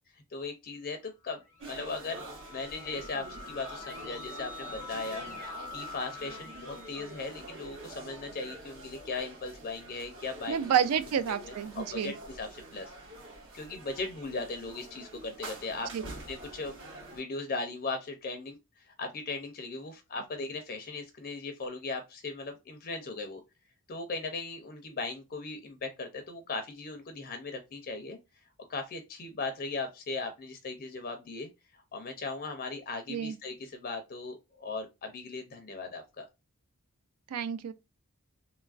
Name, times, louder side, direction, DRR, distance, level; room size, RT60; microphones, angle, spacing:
voice 1, 0.3-2.2 2.5-5.2 5.7-10.7 11.3-12.9 13.5-15.9 16.3-16.7 17.1-23.4 23.9-28.2 28.7-36.3, left 3 dB, 40° left, 0.4 m, -38 dB
Keyboard (musical), 1.4-8.0, left 4 dB, 35° right, 1.0 m, -46 dB
sound 1, 1.6-17.2, right 2 dB, 60° right, 1.0 m, -46 dB
voice 2, 10.5-12.1 15.9-16.0 33.1-33.4 37.3-37.7, right 8 dB, 80° right, 0.4 m, -29 dB
2.9 x 2.3 x 2.3 m
head